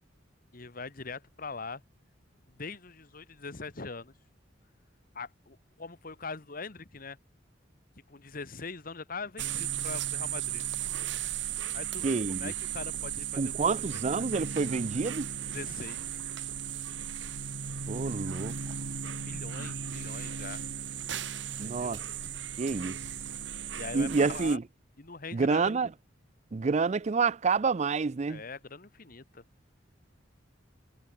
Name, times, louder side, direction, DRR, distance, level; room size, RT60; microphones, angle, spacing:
voice 1, 0.5-1.8 2.5-4.1 5.1-7.2 8.1-10.6 11.7-14.2 15.5-16.2 19.2-20.6 21.6-22.0 23.7-24.6 25.0-25.7 28.3-29.4, left 4 dB, 50° left, 1.5 m, -42 dB
sound 1, 9.4-24.6, right 8 dB, 70° right, 2.3 m, -36 dB
voice 2, 12.0-12.5 13.4-15.3 17.9-18.5 21.6-22.0 22.6-22.9 23.9-24.6 25.3-25.9 26.5-28.4, right 4 dB, 35° right, 0.4 m, -28 dB
head